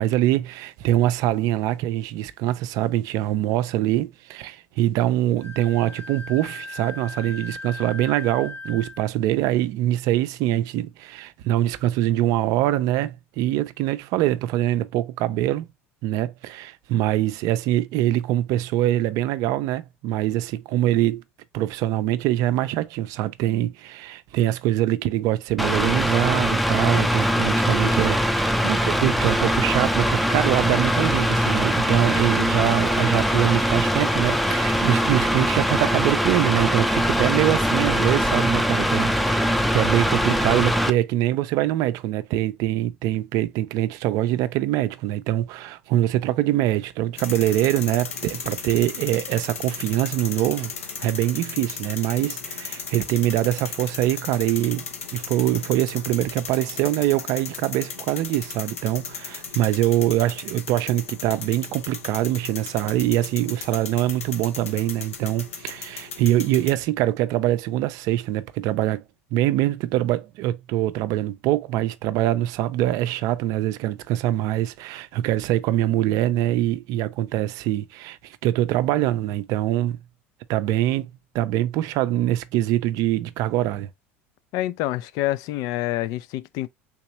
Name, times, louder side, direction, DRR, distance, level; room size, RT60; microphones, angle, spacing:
voice 1, 0.0-15.7 16.0-21.2 21.5-50.7 51.0-54.8 55.1-69.0 69.3-80.0 80.5-83.9, right 13 dB, 55° right, 0.4 m, -24 dB
Wind instrument woodwind instrument, 5.4-9.1, left 3 dB, 30° left, 0.9 m, -38 dB
Mechanical fan, 25.6-40.9, equal, ahead, 0.5 m, -22 dB
sound 1, 47.2-66.7, left 6 dB, 85° left, 0.8 m, -36 dB
voice 2, 84.5-86.7, left 15 dB, 60° left, 0.4 m, -27 dB
3.5 x 2.9 x 3.0 m
hypercardioid pair, 75°, 7 cm